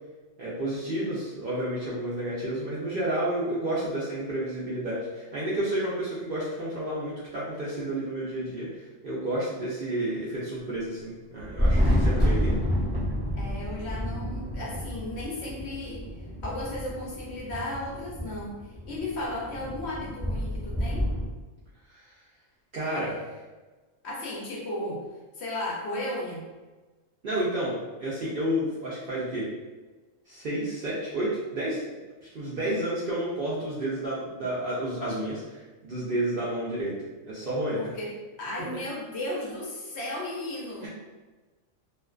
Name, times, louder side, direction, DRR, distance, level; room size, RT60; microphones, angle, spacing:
voice 1, 0.4-12.6 21.9-22.0 22.7-23.2 27.2-29.4 30.3-31.8 32.2-36.9 37.3-37.8 40.8-40.9, right 1 dB, 60° right, -8 dB, 0.6 m, -31 dB
Thunder, 11.4-21.3, equal, 10° right, 0.6 m, -29 dB
voice 2, 13.3-16.0 16.4-21.1 24.0-25.0 25.4-26.5 32.6-32.8 37.8-38.1 38.4-40.9, left 1 dB, 65° left, -4 dB, 0.8 m, -35 dB
2.4 x 2.3 x 2.3 m, 1.2 s
omnidirectional pair, 1.4 m